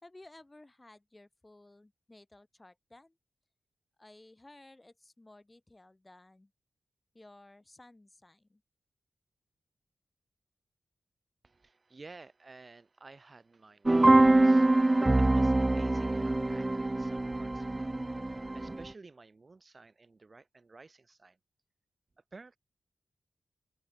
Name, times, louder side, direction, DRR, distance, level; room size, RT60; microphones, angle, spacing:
voice 1, 0.0-3.2 4.0-6.5 7.1-8.6, left 2 dB, 25° left, 5.0 m, -56 dB
voice 2, 11.4-18.0 18.2-21.4 22.3-22.6, right 3 dB, 45° right, 5.1 m, -53 dB
sound 1, 13.9-18.8, right 2 dB, 25° right, 0.3 m, -24 dB
open air
cardioid pair, 55°, 0 cm